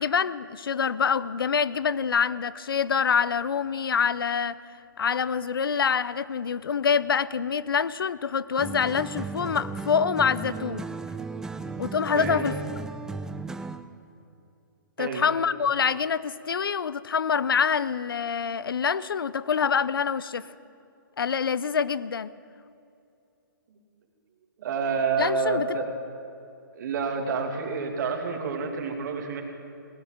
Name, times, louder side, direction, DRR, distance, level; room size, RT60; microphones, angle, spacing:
voice 1, 0.0-4.6 5.0-10.8 11.8-12.5 15.0-20.5 21.2-22.3 25.2-25.7, left 6 dB, 80° left, 18 dB, 0.5 m, -26 dB
sound 1, 8.6-13.9, right 4 dB, 5° right, 0.4 m, -35 dB
voice 2, 12.1-12.4 15.0-15.2 23.7-23.8 24.6-25.9 26.7-29.4, right 5 dB, 55° right, 4 dB, 2.4 m, -28 dB
18.0 x 9.7 x 7.2 m, 2.6 s
hypercardioid pair, 135°, 12 cm